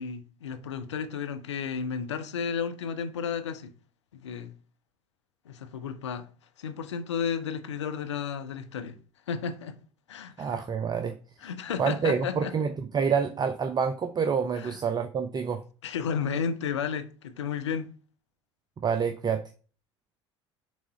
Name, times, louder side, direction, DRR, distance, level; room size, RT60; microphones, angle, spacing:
voice 1, 0.0-3.7 4.1-4.5 5.4-6.3 6.6-9.0 9.3-9.7 10.1-10.6 11.4-12.5 14.5-14.8 15.8-17.9, left 7 dB, 75° left, 0.7 m, -33 dB
voice 2, 10.4-11.2 11.8-15.6 18.8-19.4, right 6 dB, 30° right, 0.6 m, -27 dB
6.2 x 3.6 x 5.4 m
figure-of-eight pair, 65°, 15 cm